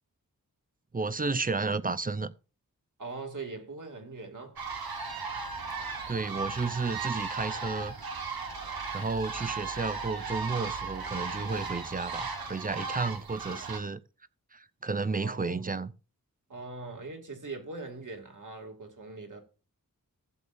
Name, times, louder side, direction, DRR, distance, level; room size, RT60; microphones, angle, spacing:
voice 1, 0.9-2.3 6.1-7.9 8.9-14.0 14.5-15.9, right 4 dB, 25° right, 0.6 m, -32 dB
voice 2, 3.0-4.6 15.1-15.7 16.5-19.4, right 3 dB, 60° right, 2.5 m, -41 dB
sound 1, 4.6-13.8, right 4 dB, 90° right, 1.5 m, -36 dB
15.0 x 7.5 x 2.6 m
wide cardioid pair, 80°, 35 cm